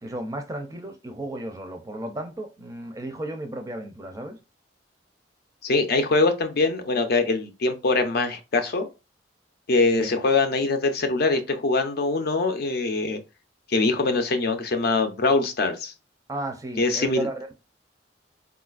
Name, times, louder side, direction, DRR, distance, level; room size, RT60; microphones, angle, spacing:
voice 1, 0.0-4.4 10.0-10.1 16.3-17.5, right 1 dB, 20° right, 0.4 m, -34 dB
voice 2, 5.6-8.9 9.7-13.2 13.7-15.9 16.8-17.3, left 3 dB, 55° left, 0.5 m, -23 dB
3.8 x 2.4 x 2.4 m
head